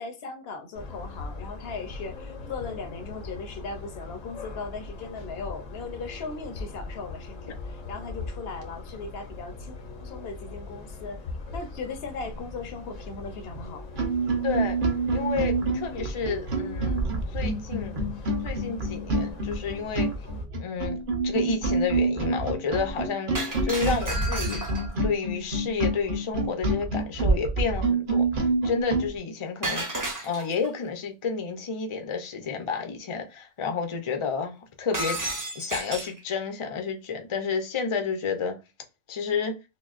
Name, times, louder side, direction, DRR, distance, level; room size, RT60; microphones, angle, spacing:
voice 1, 0.0-11.2 11.5-13.9, left 4 dB, 60° left, 0.7 m, -38 dB
sound 1, 0.7-20.4, left 3 dB, 90° left, 1.2 m, -40 dB
sound 2, 13.5-13.6 13.9-29.1, right 3 dB, 45° right, 0.9 m, -27 dB
voice 2, 14.4-14.8 15.1-18.0 18.4-20.1 20.6-23.3 23.6-24.6 25.0-29.9 30.2-35.2 35.5-38.6 39.1-39.6, left 5 dB, 45° left, 0.4 m, -30 dB
Shatter, 23.3-25.0 29.6-30.7 34.9-36.2, right 1 dB, 20° right, 0.5 m, -32 dB
5.7 x 2.0 x 2.4 m
omnidirectional pair, 1.3 m